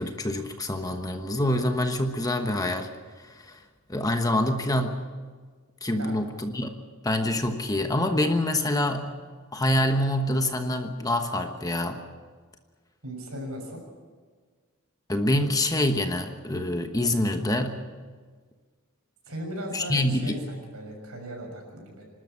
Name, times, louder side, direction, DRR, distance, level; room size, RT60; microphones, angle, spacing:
voice 1, 0.0-2.9 3.2-3.6 3.9-5.0 5.8-9.1 9.5-12.0 15.1-17.8 19.7-20.4, left 1 dB, 15° left, 6 dB, 1.2 m, -26 dB
voice 2, 13.0-13.8 19.3-22.0, equal, 75° right, 2 dB, 6.6 m, -37 dB
26.5 x 12.5 x 8.4 m, 1.5 s
head